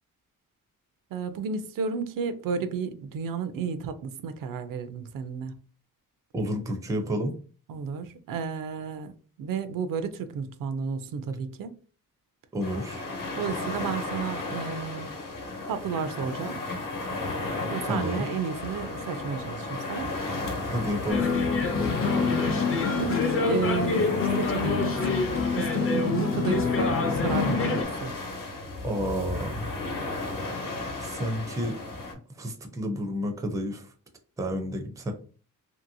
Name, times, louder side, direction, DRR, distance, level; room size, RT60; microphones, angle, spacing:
voice 1, 1.1-5.6 7.7-9.1 9.4-11.7 13.4-15.1 15.7-16.6 17.7-20.1 22.2-22.4 23.0-25.1 25.5-28.2, right 6 dB, 75° right, 0.5 m, -32 dB
voice 2, 6.3-7.3 12.5-13.1 17.8-18.3 20.7-21.2 28.8-29.7 31.0-31.8 32.3-33.9 34.4-35.1, equal, 10° right, 0.4 m, -30 dB
sound 1, 12.6-32.1, left 2 dB, 70° left, 1.0 m, -34 dB
sound 2, 21.1-27.8, left 4 dB, 40° left, 0.6 m, -26 dB
2.9 x 2.7 x 2.6 m
wide cardioid pair, 155°, 34 cm